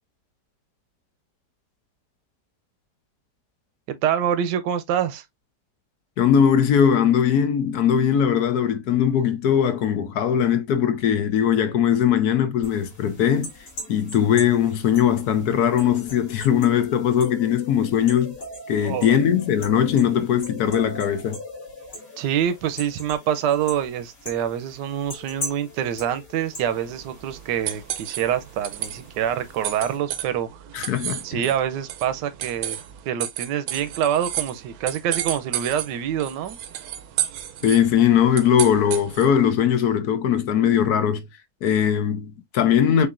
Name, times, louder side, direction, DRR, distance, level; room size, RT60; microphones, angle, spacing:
voice 1, 3.9-5.2 18.8-19.1 22.2-30.5 31.2-32.8 33.1-36.6, right 9 dB, 85° right, 1.3 m, -26 dB
voice 2, 6.2-13.5 13.9-18.4 18.7-21.4 30.7-31.4 37.6-41.3 41.6-43.1, left 8 dB, 70° left, 1.2 m, -20 dB
sound 1, 12.6-30.0, left 1 dB, 50° left, 3.0 m, -40 dB
sound 2, 26.6-39.4, right 11 dB, 70° right, 1.0 m, -33 dB
6.7 x 2.8 x 2.4 m
omnidirectional pair, 1.8 m